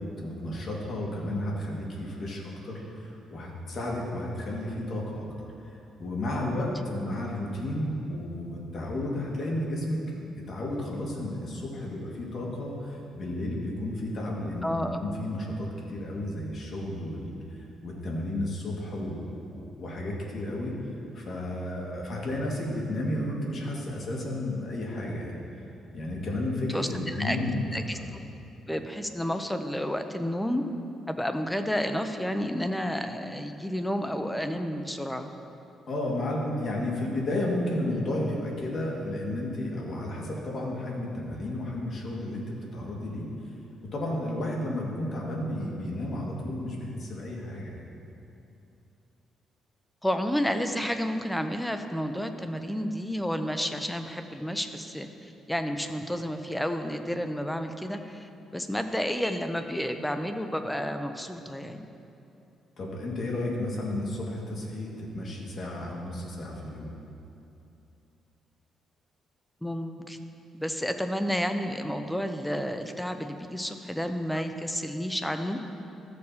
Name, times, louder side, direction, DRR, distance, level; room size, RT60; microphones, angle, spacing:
voice 1, 0.0-5.3 5.7-14.7 15.0-17.3 17.8-20.7 21.1-25.4 25.9-27.6 27.9-28.0 35.9-43.3 43.9-47.8 62.8-66.9, left 1 dB, 55° left, -2 dB, 1.9 m, -32 dB
voice 2, 14.6-15.0 26.7-27.4 27.7-28.0 28.7-30.6 31.1-35.3 50.0-55.1 55.5-61.9 69.6-70.2 70.6-75.6, equal, 5° left, 7 dB, 0.6 m, -31 dB
14.0 x 6.6 x 2.8 m, 2.8 s
cardioid pair, 90°, 0 cm